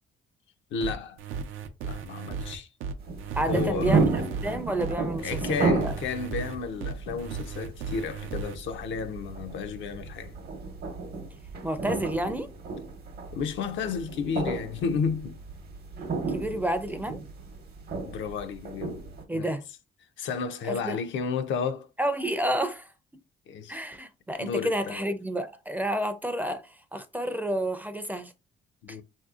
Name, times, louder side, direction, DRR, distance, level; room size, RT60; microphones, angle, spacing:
voice 1, 0.7-1.2 1.8-2.7 3.5-4.0 5.2-10.4 13.3-15.4 18.1-19.0 19.3-19.5 20.2-21.9 23.5-23.8 24.4-25.1 28.8-29.0, left 6 dB, 70° left, 0.5 m, -32 dB
sound 1, 0.8-8.6, right 5 dB, 90° right, 0.5 m, -36 dB
sound 2, 3.0-19.2, right 4 dB, 55° right, 0.8 m, -32 dB
voice 2, 3.4-4.1 4.4-5.9 11.6-12.5 16.3-17.2 19.3-19.6 20.7-21.0 22.0-22.9 23.7-28.3 28.9-29.0, right 1 dB, 10° right, 0.4 m, -30 dB
3.5 x 2.7 x 2.4 m
cardioid pair, 90°, 20 cm